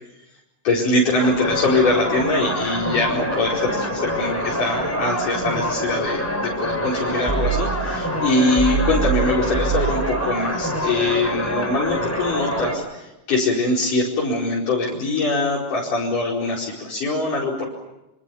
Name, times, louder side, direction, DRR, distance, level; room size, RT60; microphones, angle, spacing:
voice 1, 0.6-17.7, left 2 dB, 70° left, -5 dB, 6.4 m, -23 dB
sound 1, 1.2-12.7, right 1 dB, 5° left, 7.0 m, -25 dB
27.5 x 27.0 x 7.2 m, 0.98 s
omnidirectional pair, 3.8 m